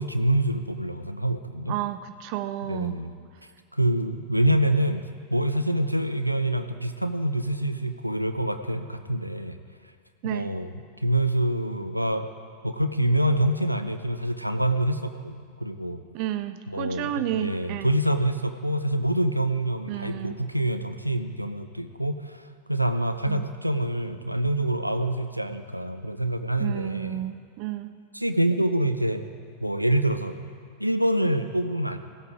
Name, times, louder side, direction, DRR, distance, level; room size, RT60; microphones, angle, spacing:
voice 1, 0.0-1.8 2.7-3.1 3.7-5.0 5.3-9.6 10.2-12.3 12.6-16.0 16.7-27.2 28.1-29.2 29.6-30.3 30.8-32.0, right 1 dB, 90° right, 8 dB, 0.6 m, -26 dB
voice 2, 1.7-3.0 10.2-10.5 16.1-17.9 19.9-20.4 23.3-23.4 26.6-27.9, right 12 dB, 45° right, 12 dB, 0.5 m, -31 dB
17.0 x 8.4 x 4.9 m, 2.1 s
figure-of-eight pair, 90°, 0 cm